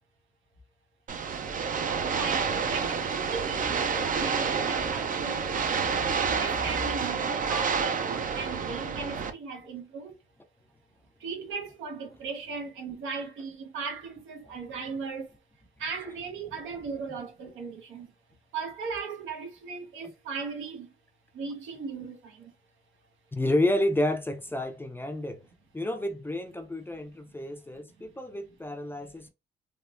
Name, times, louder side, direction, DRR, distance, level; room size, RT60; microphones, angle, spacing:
sound 1, 1.1-9.3, right 6 dB, 40° right, 0.5 m, -29 dB
voice 1, 2.1-8.1 8.3-10.2 11.2-15.3 15.8-18.1 18.5-20.9 21.3-22.5, right 4 dB, 80° right, 1.0 m, -37 dB
voice 2, 23.3-25.4 25.7-29.3, left 1 dB, 10° left, 0.5 m, -30 dB
3.5 x 2.0 x 2.4 m
cardioid pair, 90°, 20 cm